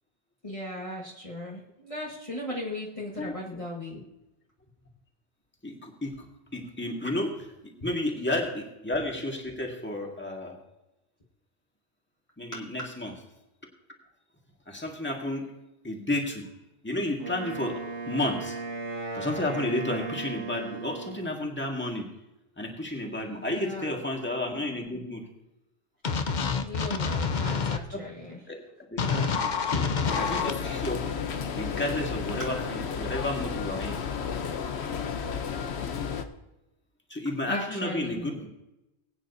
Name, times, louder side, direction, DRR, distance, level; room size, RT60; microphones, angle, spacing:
voice 1, 0.4-4.0 7.8-7.9 12.5-12.6 23.4-24.0 26.6-28.4 37.4-38.4, left 1 dB, 30° left, -4 dB, 1.5 m, -37 dB
voice 2, 5.6-6.3 6.5-7.5 7.8-10.6 12.4-13.1 14.7-15.4 15.8-16.5 16.8-18.6 19.1-22.1 22.6-25.2 27.9-28.0 28.3-28.6 28.9-29.9 30.1-31.0 31.6-34.0 37.1-38.5, left 1 dB, 10° left, 0 dB, 1.8 m, -32 dB
Wind instrument woodwind instrument, 17.2-21.4, right 3 dB, 85° right, 2.4 m, -36 dB
sound 1, 26.0-27.8 29.0-30.5, left 5 dB, 50° left, 0.8 m, -27 dB
sound 2, 30.0-36.2, left 6 dB, 70° left, 1.1 m, -32 dB
20.5 x 9.1 x 2.7 m, 0.95 s
omnidirectional pair, 1.1 m